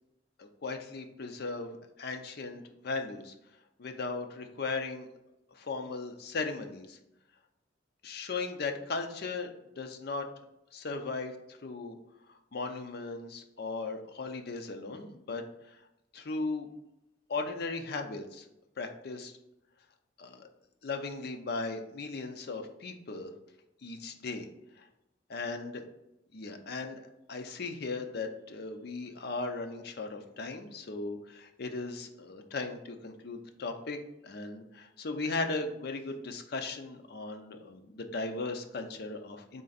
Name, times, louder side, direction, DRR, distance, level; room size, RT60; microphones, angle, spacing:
voice 1, 0.4-3.3 3.8-5.1 5.6-7.0 8.0-9.5 9.8-10.3 10.7-12.0 12.5-15.4 16.1-16.7 17.3-18.5 18.8-19.3 20.2-20.4 20.8-23.3 23.8-24.5 25.3-25.8 26.3-34.0 34.2-39.6, left 3 dB, 55° left, 5 dB, 0.5 m, -37 dB
3.8 x 3.3 x 3.9 m, 0.88 s
head